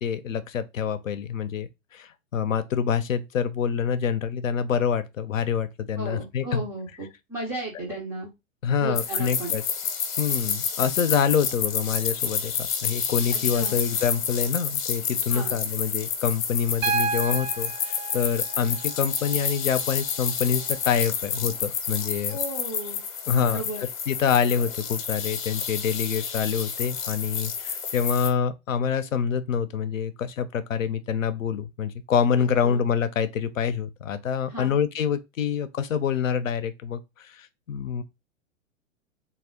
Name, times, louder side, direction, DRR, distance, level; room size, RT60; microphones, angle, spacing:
voice 1, 0.0-6.6 8.6-9.6 10.2-12.5 12.8-22.4 23.3-23.6 24.1-38.0, left 7 dB, 70° left, 0.6 m, -26 dB
voice 2, 5.9-8.3 8.8-9.5 13.3-13.8 15.3-15.6 22.3-23.0 23.4-23.8 32.6-32.8 34.5-34.8, right 2 dB, 5° right, 0.3 m, -35 dB
sound 1, 8.9-28.3, left 7 dB, 30° left, 0.8 m, -29 dB
Piano, 16.8-20.8 22.4-22.5, right 5 dB, 75° right, 0.5 m, -32 dB
3.4 x 2.3 x 3.4 m
figure-of-eight pair, 105°, 41 cm